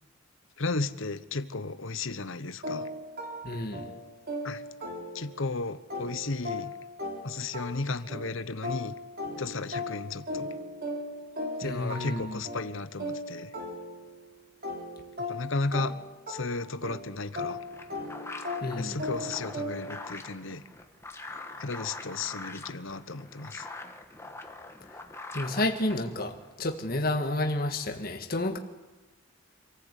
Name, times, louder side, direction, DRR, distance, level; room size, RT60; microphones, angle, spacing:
voice 1, 0.6-2.9 4.4-4.6 5.1-6.7 7.2-8.9 9.4-10.5 11.6-13.5 15.3-15.9 16.3-17.6 18.8-20.6 21.6-23.7, left 3 dB, 65° left, 1.0 m, -34 dB
sound 1, 2.6-5.5 5.9-14.2 14.6-20.1, left 1 dB, 45° right, 4.3 m, -38 dB
voice 2, 3.4-3.9 11.6-12.4 18.6-19.0 25.3-28.6, left 2 dB, 45° left, 1.7 m, -30 dB
sound 2, 17.2-26.5, left 2 dB, 10° left, 1.5 m, -44 dB
27.0 x 15.0 x 8.3 m
head